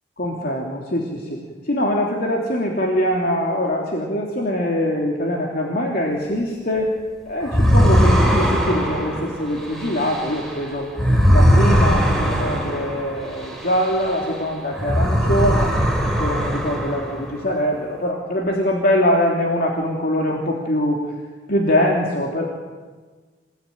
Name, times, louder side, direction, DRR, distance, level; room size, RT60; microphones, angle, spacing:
voice 1, 0.2-6.9 7.3-10.9 11.3-15.7 16.2-21.0 21.5-22.4, equal, 55° left, -1 dB, 3.2 m, -23 dB
sound 1, 7.5-14.4 14.7-17.4, equal, ahead, 4.6 m, -19 dB
28.5 x 18.0 x 9.4 m, 1.4 s
head